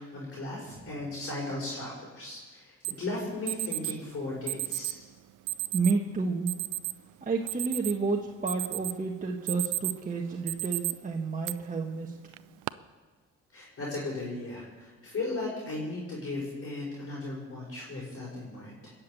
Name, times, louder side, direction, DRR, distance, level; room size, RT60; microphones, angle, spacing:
voice 1, 0.0-4.9 13.5-18.9, left 2 dB, 50° left, -4 dB, 5.6 m, -36 dB
Alarm, 2.8-2.9 3.5-3.9 4.5-5.0 5.5-5.9 6.5-6.9 7.3-8.1 8.5-9.0 9.3-10.0 10.5-10.9 11.4-11.5 12.3-12.7, right 19 dB, 80° right, 0.5 m, -32 dB
voice 2, 5.7-6.5 7.2-12.2, right 4 dB, 25° right, 0 dB, 1.4 m, -30 dB
20.5 x 7.3 x 8.4 m, 1.3 s
cardioid pair, 90°, 30 cm